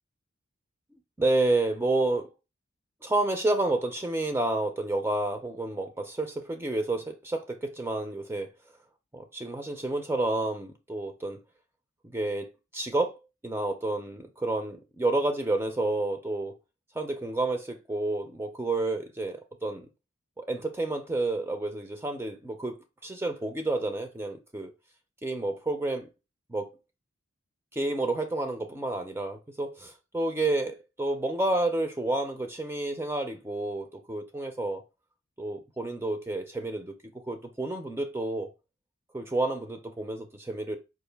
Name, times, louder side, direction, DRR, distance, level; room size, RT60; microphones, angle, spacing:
voice 1, 1.2-2.3 3.0-8.5 9.1-11.4 12.1-13.2 13.4-16.6 17.0-19.9 20.4-24.7 25.2-26.1 26.5-26.7 27.7-34.8 35.4-37.0 37.3-38.5 39.1-40.8, right 2 dB, 10° right, 0.3 m, -30 dB
4.5 x 2.4 x 3.3 m
head